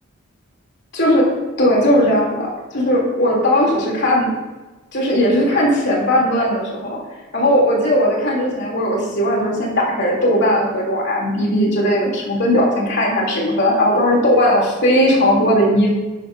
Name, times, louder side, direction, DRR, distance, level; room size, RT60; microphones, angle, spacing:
voice 1, 0.9-1.3 1.6-4.3 4.9-7.0 7.3-15.9, equal, 60° left, -3 dB, 3.1 m, -17 dB
11.5 x 11.0 x 2.7 m, 1.2 s
head